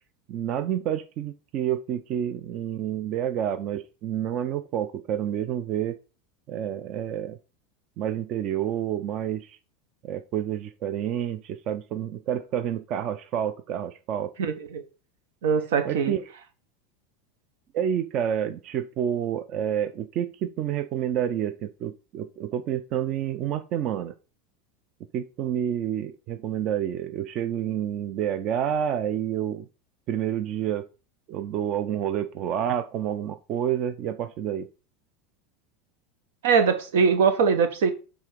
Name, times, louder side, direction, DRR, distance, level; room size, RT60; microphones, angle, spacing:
voice 1, 0.3-6.0 6.5-7.4 8.0-9.6 10.0-14.3 15.8-16.2 17.7-24.1 25.1-29.7 30.1-30.8 31.3-34.7, right 10 dB, 35° right, 0.4 m, -29 dB
voice 2, 14.4-14.8 15.4-16.1 36.4-37.9, right 6 dB, 90° right, 1.3 m, -22 dB
7.0 x 3.7 x 4.6 m
supercardioid pair, 160°, 0 cm